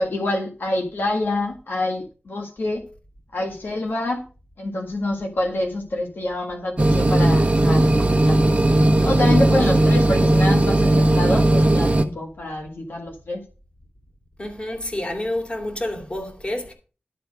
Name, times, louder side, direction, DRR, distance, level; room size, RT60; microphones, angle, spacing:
voice 1, 0.0-2.8 3.3-4.3 4.6-8.6 9.0-13.4, left 2 dB, 85° left, 1.7 m, -26 dB
sound 1, 6.8-12.0, right 1 dB, 35° right, 1.2 m, -17 dB
voice 2, 14.4-16.7, left 1 dB, 30° left, 2.6 m, -29 dB
12.0 x 4.3 x 6.3 m
wide cardioid pair, 70°, 4 cm